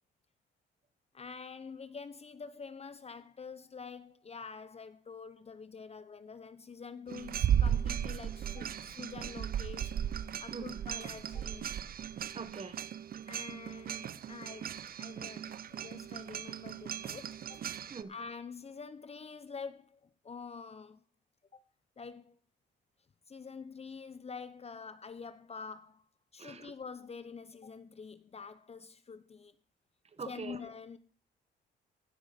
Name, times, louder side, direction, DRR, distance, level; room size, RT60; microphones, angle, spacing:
voice 1, 1.1-10.0 10.4-11.7 13.3-17.6 18.1-21.0 21.5-21.6 22.0-22.4 23.3-26.1 26.3-29.5 30.2-31.0, left 5 dB, 30° left, 0.7 m, -47 dB
sound 1, 7.1-18.0, right 9 dB, 50° right, 0.6 m, -36 dB
voice 2, 12.3-12.8 17.9-18.1 26.4-26.7 30.2-30.6, right 5 dB, 30° right, 1.3 m, -43 dB
15.5 x 6.2 x 5.1 m
cardioid pair, 90°, 20 cm